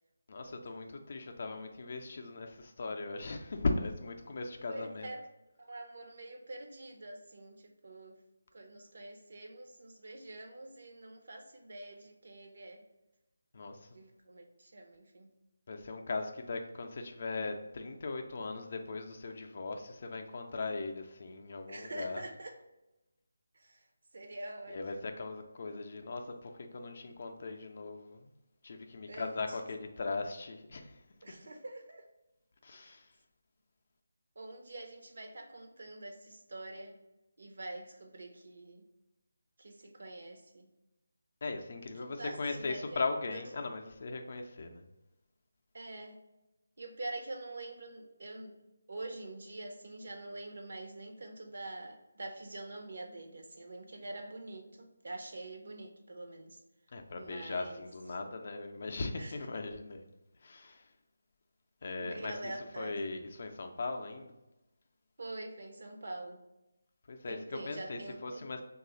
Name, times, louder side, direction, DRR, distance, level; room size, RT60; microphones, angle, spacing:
voice 1, 0.3-5.1 13.5-13.9 15.7-22.2 24.7-28.3 28.6-31.0 32.6-33.1 41.4-44.8 56.9-60.1 60.4-60.9 61.8-64.3 67.1-68.6, left 3 dB, 50° left, 4 dB, 0.4 m, -39 dB
voice 2, 4.7-5.2 5.6-8.2 8.5-12.8 13.9-15.3 21.7-22.5 23.5-23.9 24.1-25.0 29.1-29.6 31.2-32.0 32.7-32.9 34.4-36.9 37.4-38.9 39.6-40.7 42.2-43.1 43.3-43.4 45.7-46.2 46.8-48.6 48.9-56.6 57.2-57.8 59.1-59.3 62.0-63.0 65.2-66.4 67.3-68.6, right 2 dB, 60° right, 3 dB, 0.6 m, -45 dB
3.0 x 2.4 x 4.0 m, 0.98 s
figure-of-eight pair, 160°, 0 cm